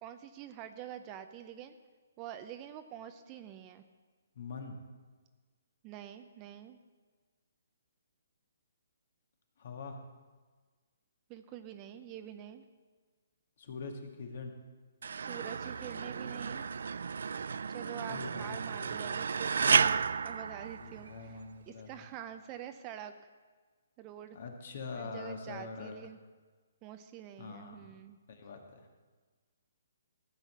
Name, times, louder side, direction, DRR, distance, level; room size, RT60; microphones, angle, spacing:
voice 1, 0.0-1.8 2.2-3.8 5.8-6.8 11.3-12.6 15.1-16.7 17.7-20.0 20.2-21.4 21.7-23.1 24.0-24.4 24.9-26.2 26.8-28.2, right 10 dB, 25° right, 9 dB, 0.6 m, -46 dB
voice 2, 4.4-4.8 9.6-10.0 13.6-14.5 18.1-19.0 20.8-22.1 24.3-26.0 27.4-27.9 28.3-28.9, left 4 dB, 55° left, 4 dB, 2.0 m, -44 dB
sound 1, 15.0-21.3, right 6 dB, 70° right, 0.3 m, -32 dB
14.5 x 5.7 x 8.2 m, 1.4 s
hypercardioid pair, 160°, 0 cm